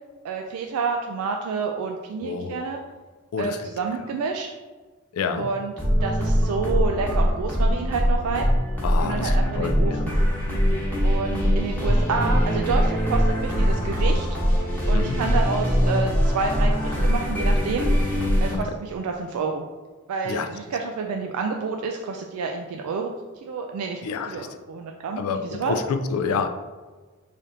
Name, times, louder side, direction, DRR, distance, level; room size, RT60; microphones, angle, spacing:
voice 1, 0.2-2.8 3.4-4.5 5.4-5.7 6.0-8.5 9.0-10.1 11.0-14.3 14.9-17.9 18.4-19.6 20.1-23.1 23.4-24.0 24.3-25.8, right 4 dB, 90° right, 2 dB, 0.3 m, -29 dB
voice 2, 2.2-2.7 3.3-3.7 4.0-4.1 5.1-5.5 8.8-10.1 14.9-15.2 18.5-18.6 20.2-20.5 24.0-24.5 25.2-26.5, left 5 dB, 75° left, 7 dB, 0.4 m, -28 dB
sound 1, 5.8-18.5, equal, 10° left, 1.0 m, -22 dB
3.4 x 2.7 x 3.8 m, 1.3 s
head